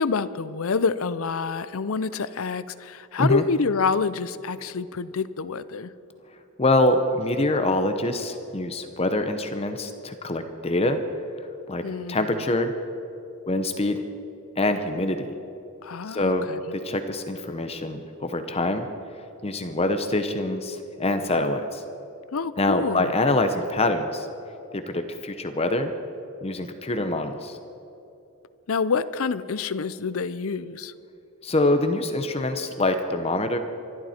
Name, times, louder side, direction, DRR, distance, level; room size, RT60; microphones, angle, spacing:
voice 1, 0.0-5.9 11.8-12.4 15.8-16.6 22.3-23.1 28.7-30.9, left 5 dB, 70° left, 15 dB, 0.6 m, -27 dB
voice 2, 6.6-11.0 11.7-11.8 12.1-12.7 13.5-14.0 14.6-15.3 16.1-18.9 19.4-21.8 22.6-24.3 24.7-25.9 26.4-27.6 31.4-33.6, left 2 dB, 30° left, 8 dB, 0.8 m, -25 dB
26.0 x 12.0 x 4.4 m, 2.9 s
head